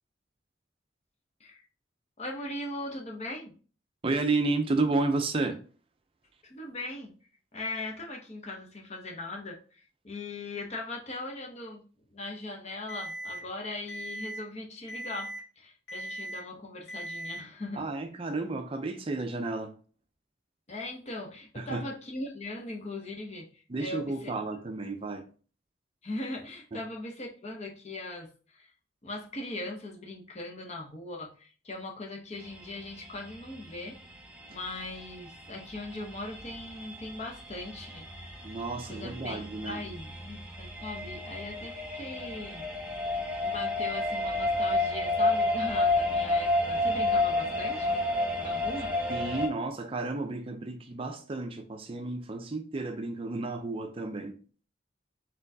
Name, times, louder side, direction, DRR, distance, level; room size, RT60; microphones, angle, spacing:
voice 1, 2.2-3.5 6.4-7.1 7.5-11.8 12.1-15.3 15.6-17.9 20.7-24.4 26.0-28.7 29.0-34.0 34.5-38.0 38.9-42.6 43.0-48.0 48.4-49.0, left 2 dB, 35° left, 0.8 m, -40 dB
voice 2, 4.0-5.6 17.8-19.7 21.6-21.9 23.7-25.3 26.7-26.8 38.4-39.8 49.1-54.4, right 3 dB, 30° right, 0.4 m, -32 dB
Alarm, 12.9-13.4 13.9-14.4 14.9-15.4 15.9-16.4 16.9-17.4, right 1 dB, 75° left, 2.1 m, -38 dB
sound 1, 32.3-49.5, left 2 dB, 5° right, 0.9 m, -31 dB
4.3 x 3.8 x 2.7 m
head